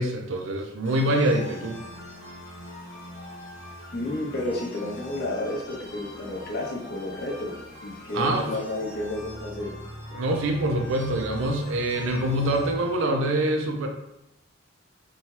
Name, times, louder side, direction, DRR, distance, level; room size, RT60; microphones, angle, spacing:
voice 1, 0.0-1.8 8.1-8.5 10.1-13.9, right 1 dB, 70° right, 3 dB, 0.4 m, -25 dB
sound 1, 0.8-13.1, left 1 dB, 85° left, 1.2 m, -42 dB
voice 2, 3.9-9.7, left 2 dB, 50° left, -2 dB, 0.6 m, -31 dB
2.8 x 2.2 x 3.0 m, 0.85 s
head